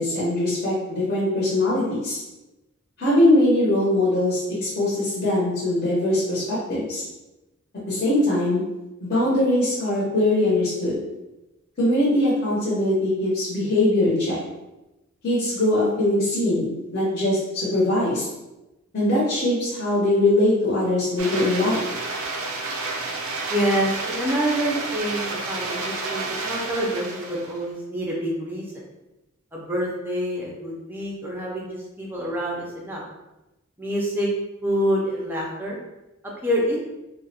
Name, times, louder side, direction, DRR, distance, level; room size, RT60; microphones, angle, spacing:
voice 1, 0.0-2.2 3.0-7.0 7.9-8.6 9.0-11.0 11.8-14.4 15.2-18.3 18.9-21.8, left 1 dB, 50° left, -8 dB, 0.6 m, -21 dB
sound 1, 21.2-27.6, right 3 dB, 85° right, 0.4 m, -30 dB
voice 2, 23.5-28.6 29.5-33.0 33.8-34.3 34.6-35.8 36.4-36.8, equal, 10° right, -3 dB, 0.4 m, -26 dB
2.3 x 2.0 x 2.7 m, 1.0 s
head